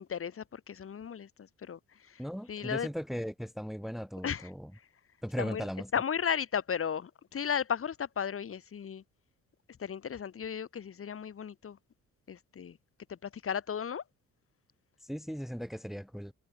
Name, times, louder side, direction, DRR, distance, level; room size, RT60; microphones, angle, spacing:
voice 1, 0.0-1.8 2.1-2.2 2.5-2.9 4.2-4.5 5.4-5.6 5.9-9.0 9.8-11.8 12.3-12.8 13.1-14.0, left 7 dB, 45° left, 2.4 m, -35 dB
voice 2, 2.2-4.7 5.2-5.9 15.1-16.3, equal, ahead, 1.4 m, -37 dB
cardioid pair, 90°, 30 cm